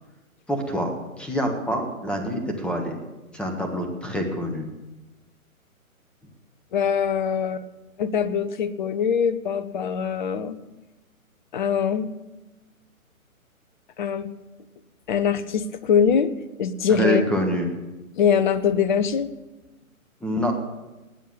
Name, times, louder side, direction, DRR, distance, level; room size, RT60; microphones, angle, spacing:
voice 1, 0.5-2.9 3.3-4.7 16.9-17.7 20.2-20.5, equal, ahead, 4 dB, 1.5 m, -26 dB
voice 2, 6.7-7.6 8.0-10.5 11.5-12.1 14.0-14.3 15.1-16.3 16.6-17.2 18.2-19.3, left 7 dB, 35° left, 14 dB, 0.9 m, -23 dB
19.5 x 7.5 x 8.6 m, 1.1 s
figure-of-eight pair, 135°, 43 cm